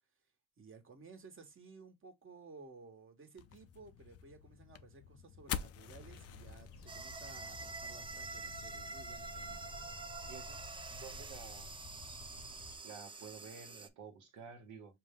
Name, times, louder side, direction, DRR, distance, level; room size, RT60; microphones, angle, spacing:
voice 1, 0.6-9.8, right 4 dB, 45° right, 1.3 m, -56 dB
sound 1, 3.4-10.1, left 9 dB, 55° left, 0.5 m, -48 dB
sound 2, 5.8-12.8, left 3 dB, 85° left, 1.1 m, -53 dB
sound 3, 6.9-13.9, right 3 dB, 15° right, 0.5 m, -47 dB
voice 2, 10.2-10.6 10.9-11.8 12.8-15.0, right 5 dB, 80° right, 1.2 m, -51 dB
5.2 x 2.2 x 3.5 m
cardioid pair, 90°, 30 cm